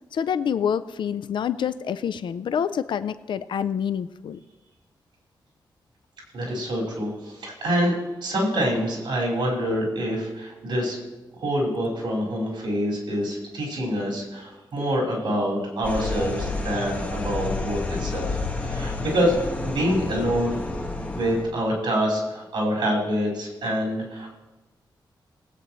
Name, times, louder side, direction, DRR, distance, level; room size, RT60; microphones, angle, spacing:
voice 1, 0.1-4.4, left 8 dB, 80° left, 13 dB, 0.4 m, -27 dB
voice 2, 6.3-7.9 8.2-11.0 11.4-18.4 18.6-19.4 19.6-20.6 21.1-24.3, equal, 70° right, -4 dB, 4.9 m, -26 dB
sound 1, 15.8-21.4, left 3 dB, 15° left, 1.4 m, -30 dB
21.0 x 8.8 x 3.1 m, 1.1 s
wide cardioid pair, 165°, 8 cm